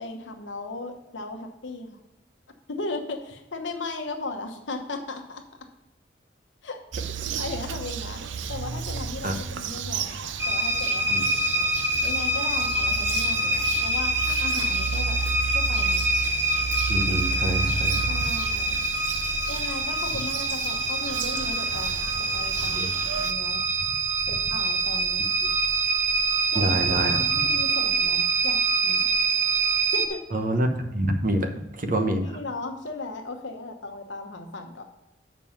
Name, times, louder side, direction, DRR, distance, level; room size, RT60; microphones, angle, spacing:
voice 1, 0.0-2.0 2.7-5.4 6.6-6.8 7.4-11.7 12.0-15.2 15.5-16.0 18.1-18.8 19.5-22.1 22.3-23.6 24.3-25.3 26.5-29.1 29.9-30.2 32.2-34.8, left 2 dB, 80° left, 5 dB, 1.1 m, -37 dB
Bird vocalization bird call bird song, 6.9-23.3, right 6 dB, 80° right, 0.5 m, -33 dB
sound 1, 10.4-30.1, right 2 dB, 15° right, 0.8 m, -25 dB
voice 2, 16.9-18.1 22.7-22.9 25.4-25.5 26.5-27.2 30.3-31.5 31.8-32.4, right 1 dB, 45° right, 6 dB, 0.9 m, -26 dB
7.2 x 5.4 x 5.6 m, 0.93 s
head